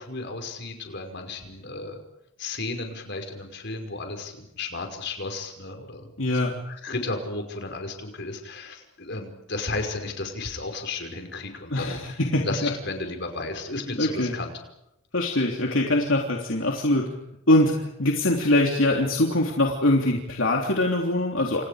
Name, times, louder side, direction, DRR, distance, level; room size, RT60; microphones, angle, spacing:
voice 1, 0.0-2.0 2.4-14.5, left 3 dB, 55° left, 5 dB, 5.5 m, -34 dB
voice 2, 6.2-6.5 11.7-12.7 14.0-14.3 15.1-17.1 17.5-21.6, left 1 dB, 70° left, 0 dB, 3.4 m, -23 dB
29.5 x 28.0 x 5.1 m, 0.84 s
head